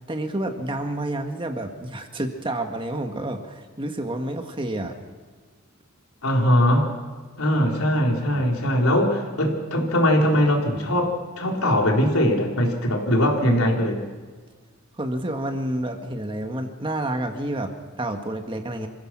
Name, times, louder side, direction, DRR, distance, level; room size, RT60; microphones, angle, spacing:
voice 1, 0.1-5.0 15.0-18.9, right 1 dB, 25° right, 5 dB, 1.7 m, -29 dB
voice 2, 6.2-6.9 7.4-14.0, equal, 85° left, 0 dB, 4.1 m, -21 dB
26.5 x 16.5 x 6.1 m, 1.5 s
head